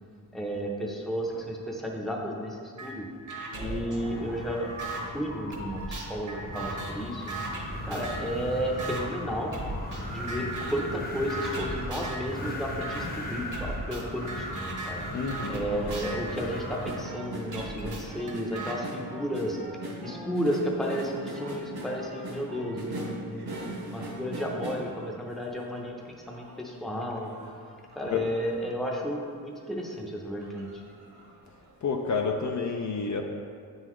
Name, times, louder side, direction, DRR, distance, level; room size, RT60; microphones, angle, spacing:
voice 1, 0.3-3.1 3.6-4.7 5.1-7.2 7.8-9.5 10.1-15.0 15.5-19.6 20.0-27.3 27.9-30.8, equal, ahead, -1 dB, 0.7 m, -33 dB
sound 1, 2.8-2.9 3.3-5.0 5.5-8.3 8.8-9.0 9.5-10.0 10.3-10.9 11.3-12.3 12.8-13.0 13.5-17.0 17.5-18.8, right 2 dB, 50° right, 1.0 m, -38 dB
Wind, 3.5-17.2, equal, 25° left, 0.9 m, -38 dB
voice 2, 15.1-15.7 28.1-28.2 31.8-33.2, left 4 dB, 50° left, 2 dB, 0.4 m, -30 dB
sound 2, 15.5-25.8 26.2-28.7 29.2-29.3 29.6-29.9 30.4-31.3 31.7-31.8, right 1 dB, 75° right, 1.2 m, -40 dB
8.6 x 3.9 x 3.1 m, 2.3 s
wide cardioid pair, 120°, 38 cm